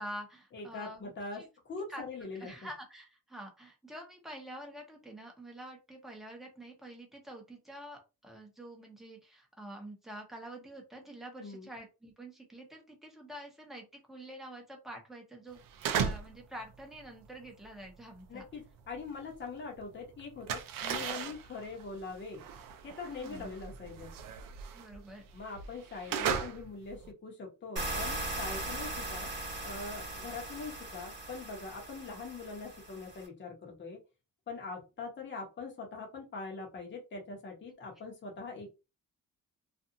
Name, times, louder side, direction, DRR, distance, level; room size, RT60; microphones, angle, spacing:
voice 1, 0.0-1.5 1.9-2.0 2.3-15.6 15.9-18.4 23.0-23.5 24.7-25.3, right 1 dB, ahead, 1 dB, 0.8 m, -47 dB
voice 2, 0.5-2.5 11.4-11.7 18.3-22.4 22.8-24.1 25.3-29.3 29.6-34.0 34.5-38.7, left 4 dB, 30° left, 0 dB, 0.9 m, -43 dB
sound 1, 15.6-16.4 16.7-19.7 19.9-27.1, right 7 dB, 70° right, 0.5 m, -37 dB
sound 2, 27.8-33.3, right 2 dB, 35° right, 1.0 m, -39 dB
2.5 x 2.4 x 2.7 m, 0.28 s
cardioid pair, 130°, 35 cm